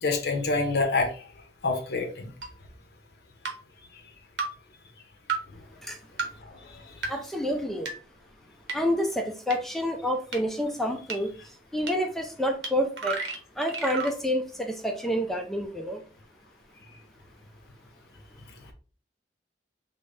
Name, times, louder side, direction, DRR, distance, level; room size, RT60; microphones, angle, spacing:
voice 1, 0.0-1.1 1.6-2.3, left 3 dB, 60° left, 4 dB, 0.7 m, -26 dB
sound 1, 2.4-2.5 3.4-3.6 4.4-4.5 5.3-5.4 6.2-6.3 7.0-7.1 7.9-8.0 8.7-8.8 9.5-9.6 10.3-10.4 11.1-11.2 11.9-12.0 12.6-12.7 13.0-14.1, right 4 dB, 80° right, 0.9 m, -31 dB
voice 2, 7.1-7.9 8.7-13.2 13.6-16.0, equal, ahead, 3 dB, 0.3 m, -28 dB
3.9 x 2.0 x 3.5 m, 0.39 s
head